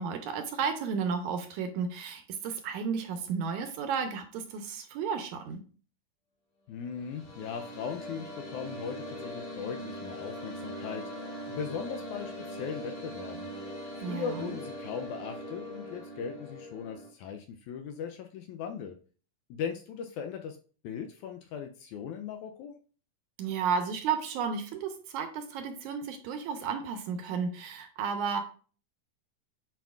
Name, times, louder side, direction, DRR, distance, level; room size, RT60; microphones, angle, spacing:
voice 1, 0.0-5.6 14.0-14.6 23.4-28.4, right 6 dB, 75° right, 6 dB, 2.0 m, -33 dB
voice 2, 6.7-13.5 14.0-19.0 19.5-20.6 20.8-22.8, left 7 dB, 80° left, 5 dB, 1.8 m, -39 dB
sound 1, 6.8-17.1, equal, 55° left, 3.8 m, -41 dB
8.9 x 4.8 x 2.4 m, 0.40 s
omnidirectional pair, 3.8 m